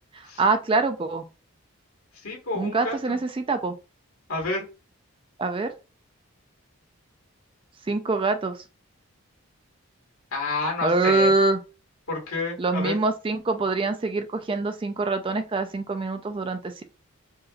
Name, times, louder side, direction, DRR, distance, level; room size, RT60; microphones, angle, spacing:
voice 1, 0.1-1.2 2.5-3.7 5.4-5.7 7.9-8.6 10.8-11.6 12.6-16.8, right 3 dB, 25° right, 8 dB, 0.3 m, -24 dB
voice 2, 2.1-3.2 4.3-4.7 10.3-11.3 12.1-13.0, left 3 dB, 75° left, 0 dB, 1.8 m, -29 dB
4.8 x 2.9 x 2.4 m, 0.31 s
head